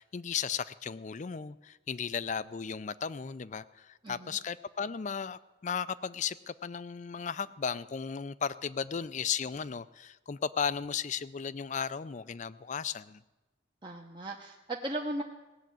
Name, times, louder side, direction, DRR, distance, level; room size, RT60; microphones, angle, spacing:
voice 1, 0.0-13.2, left 6 dB, 40° left, 17 dB, 0.4 m, -35 dB
voice 2, 4.0-4.4 13.8-15.2, right 1 dB, 25° right, 0 dB, 0.8 m, -37 dB
17.5 x 7.2 x 9.1 m, 1.1 s
head